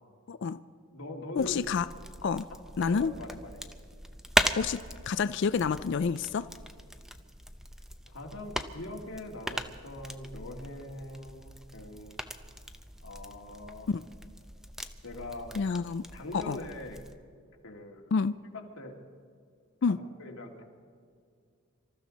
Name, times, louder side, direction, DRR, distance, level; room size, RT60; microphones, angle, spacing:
voice 1, 0.3-0.6 1.4-1.9 2.2-2.4 2.8-3.1 4.6-4.8 5.1-6.5 13.9-14.0 15.5-16.0 16.3-16.6 18.1-18.3 19.8-20.0, left 5 dB, 55° left, 13 dB, 0.4 m, -28 dB
voice 2, 0.9-1.6 2.5-3.6 8.1-12.2 13.0-13.9 15.0-15.5 16.1-17.0 17.6-18.0 18.5-18.9 19.9-20.6, left 1 dB, 85° left, 1 dB, 2.2 m, -42 dB
sound 1, 1.4-17.1, equal, ahead, 0.6 m, -38 dB
25.5 x 14.0 x 4.1 m, 2.2 s
head